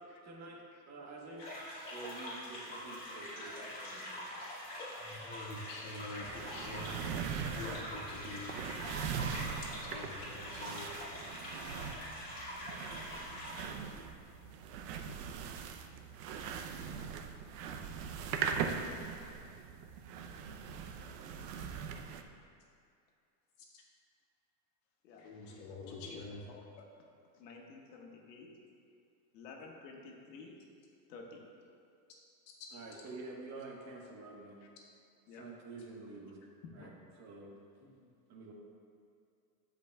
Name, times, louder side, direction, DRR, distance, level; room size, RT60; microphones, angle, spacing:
voice 1, 0.2-1.5 1.9-4.3 9.7-10.0 32.7-34.6 35.4-36.4 36.7-36.9 37.2-37.5 38.3-38.5, right 3 dB, 30° right, -1 dB, 1.2 m, -48 dB
sound 1, 1.4-13.6, left 1 dB, 15° left, 1.9 m, -44 dB
voice 2, 2.2-2.6 25.0-26.6 27.3-28.5 29.3-30.6 31.1-31.4 34.6-34.7 35.3-35.5 36.7-36.9, left 4 dB, 80° left, 0 dB, 1.5 m, -53 dB
voice 3, 4.9-7.0 7.6-8.6 9.9-10.9 23.7-23.8 25.2-26.4 37.8-37.9, left 2 dB, 65° left, -3 dB, 1.8 m, -46 dB
sound 2, 6.2-22.2, right 6 dB, 70° right, 0.7 m, -41 dB
15.0 x 5.2 x 2.3 m, 2.3 s
supercardioid pair, 145°, 50 cm